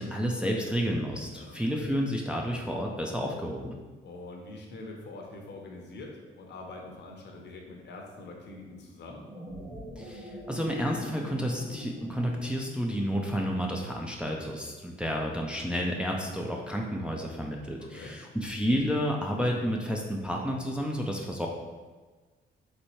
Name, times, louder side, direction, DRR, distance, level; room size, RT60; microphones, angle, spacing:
voice 1, 0.0-3.8 10.0-21.5, equal, 5° right, -1 dB, 0.5 m, -31 dB
voice 2, 1.2-1.6 4.0-9.3 17.8-18.1, left 2 dB, 60° left, 1 dB, 0.9 m, -44 dB
sound 1, 9.1-13.7, equal, 25° right, 1.2 m, -44 dB
4.2 x 3.3 x 3.1 m, 1.4 s
cardioid pair, 90°, 20 cm